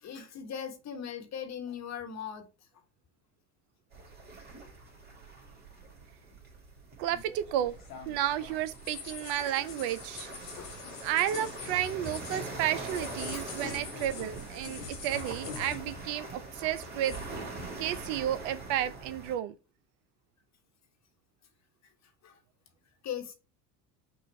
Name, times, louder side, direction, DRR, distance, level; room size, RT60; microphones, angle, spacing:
voice 1, 0.0-2.5 10.6-11.0 13.3-13.5 22.2-22.4 23.0-23.3, left 8 dB, 35° left, 1.2 m, -39 dB
sound 1, 3.9-19.3, right 2 dB, 20° right, 2.0 m, -43 dB
voice 2, 7.0-7.8 8.1-10.3 11.0-17.1 17.8-19.5, right 11 dB, 55° right, 0.5 m, -32 dB
sound 2, 7.1-16.2 16.4-17.3, left 6 dB, 80° left, 1.5 m, -45 dB
6.1 x 2.4 x 3.1 m
hypercardioid pair, 85°, 48 cm